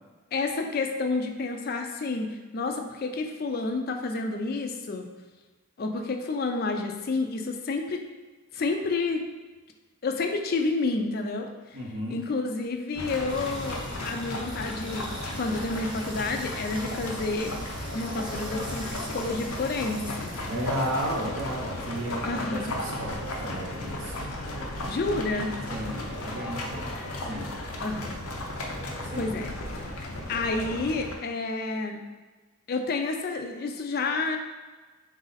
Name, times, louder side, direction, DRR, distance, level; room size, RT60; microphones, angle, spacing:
voice 1, 0.3-5.1 5.8-8.0 8.5-9.2 10.0-11.8 12.1-15.1 15.4-17.5 17.9-20.3 22.2-22.8 24.9-25.5 27.8-28.2 29.2-29.5 30.3-32.0 32.7-34.4, left 3 dB, 45° left, 4 dB, 0.4 m, -30 dB
voice 2, 11.7-12.2 20.5-24.5 25.7-27.0 27.2-27.5 29.0-29.3, equal, 60° right, -1 dB, 0.6 m, -34 dB
sound 1, 12.9-31.1, left 1 dB, 85° left, 0.6 m, -35 dB
sound 2, 13.2-21.3, right 2 dB, 20° right, 0.5 m, -45 dB
4.0 x 2.5 x 3.9 m, 1.3 s
head